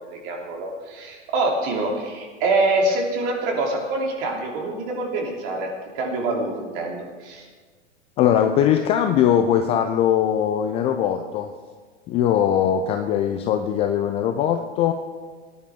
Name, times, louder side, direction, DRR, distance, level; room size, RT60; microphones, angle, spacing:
voice 1, 0.0-5.7 5.9-7.4, right 2 dB, 45° right, 0 dB, 3.1 m, -25 dB
voice 2, 8.2-11.5 12.1-14.9, left 9 dB, 20° left, 6 dB, 0.3 m, -20 dB
18.5 x 10.0 x 3.6 m, 1.5 s
figure-of-eight pair, 105°, 37 cm